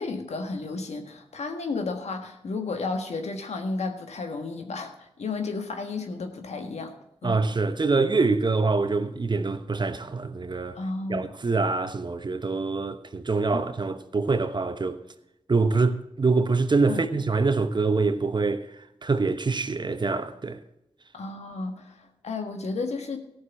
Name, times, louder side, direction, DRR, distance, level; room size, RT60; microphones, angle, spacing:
voice 1, 0.0-6.9 7.2-7.4 10.7-11.3 16.9-17.0 21.1-23.2, left 3 dB, 75° left, 1.5 m, -32 dB
voice 2, 7.2-10.8 11.1-15.0 15.5-18.7 19.0-20.6, right 3 dB, 40° right, 1.0 m, -25 dB
14.5 x 6.5 x 5.8 m
cardioid pair, 45°, 11 cm